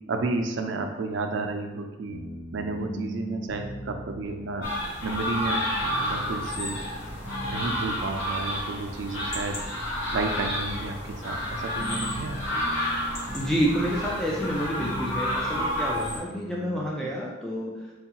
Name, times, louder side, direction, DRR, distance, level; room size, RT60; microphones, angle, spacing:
voice 1, 0.1-2.2 2.5-4.7 5.0-5.7 6.0-6.8 7.4-9.6 10.1-12.4 17.0-17.1, right 3 dB, 65° right, 4 dB, 0.4 m, -31 dB
sound 1, 2.1-16.9, equal, 40° left, 0.6 m, -40 dB
sound 2, 4.6-16.2, equal, 80° left, 0.9 m, -30 dB
voice 2, 13.3-17.7, equal, 5° left, -4 dB, 0.4 m, -28 dB
4.6 x 2.3 x 2.8 m, 1.1 s
head